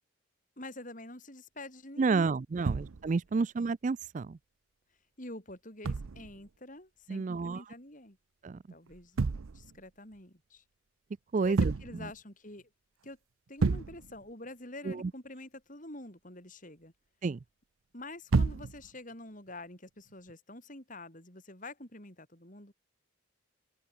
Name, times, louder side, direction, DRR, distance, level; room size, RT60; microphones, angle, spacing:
voice 1, 0.6-2.3 2.6-2.7 3.3-3.4 5.2-8.2 8.7-9.2 9.5-10.6 11.4-12.7 13.0-13.2 13.5-16.9 17.9-22.7, left 2 dB, 40° left, 6.3 m, -47 dB
voice 2, 2.0-4.4 7.1-7.6 8.4-8.6 11.3-11.7 14.9-15.1 17.2-17.4, right 4 dB, 40° right, 0.3 m, -30 dB
sound 1, 2.6-3.3 5.8-6.5 8.9-9.8 11.4-12.2 12.6-12.7 13.0-13.1 13.6-14.2 18.3-19.0 20.1-20.3, right 4 dB, 85° right, 0.6 m, -31 dB
open air
head